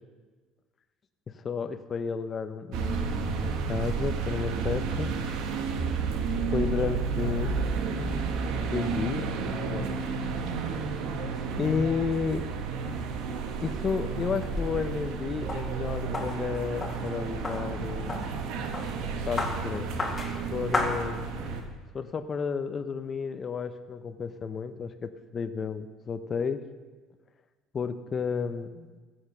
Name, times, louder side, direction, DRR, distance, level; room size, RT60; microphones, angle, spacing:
voice 1, 1.3-5.2 6.5-7.6 7.9-9.3 9.7-10.0 11.6-12.5 12.9-13.3 13.6-18.2 19.3-19.9 20.5-21.2 21.9-26.6 27.7-29.0, left 5 dB, 30° left, 10 dB, 0.7 m, -32 dB
sound 1, 2.7-21.6, right 5 dB, 70° right, 1.4 m, -31 dB
sound 2, 14.1-21.7, left 2 dB, 15° left, 2.2 m, -36 dB
15.5 x 7.9 x 6.6 m, 1.3 s
cardioid pair, 120°, 0 cm